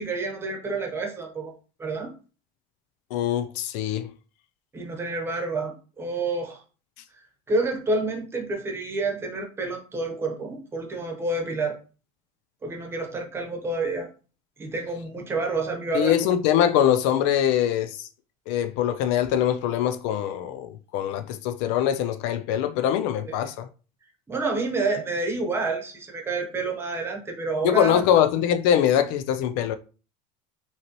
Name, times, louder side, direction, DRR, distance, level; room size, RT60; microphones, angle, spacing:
voice 1, 0.0-1.5 1.8-2.1 4.7-6.6 7.5-11.8 12.6-14.1 14.6-16.3 23.3-23.4 24.3-28.0, right 3 dB, 15° right, 1.0 m, -29 dB
voice 2, 3.1-4.1 15.9-18.1 18.5-23.7 27.6-29.8, left 10 dB, 65° left, 0.4 m, -23 dB
5.6 x 2.9 x 3.0 m
cardioid pair, 160°, 16 cm